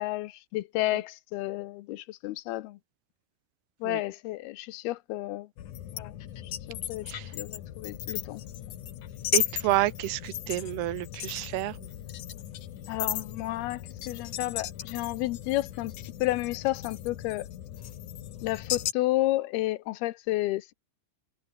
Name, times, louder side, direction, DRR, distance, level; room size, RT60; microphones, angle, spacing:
voice 1, 0.0-2.8 3.8-5.5 5.9-6.1 6.7-7.1 7.3-8.4 12.9-13.8 14.1-15.9 16.2-17.5 18.4-20.7, left 17 dB, 80° left, 2.6 m, -31 dB
sound 1, 5.6-18.9, left 11 dB, 60° left, 2.6 m, -36 dB
voice 2, 9.3-11.9, right 16 dB, 85° right, 2.9 m, -30 dB
omnidirectional pair, 4.7 m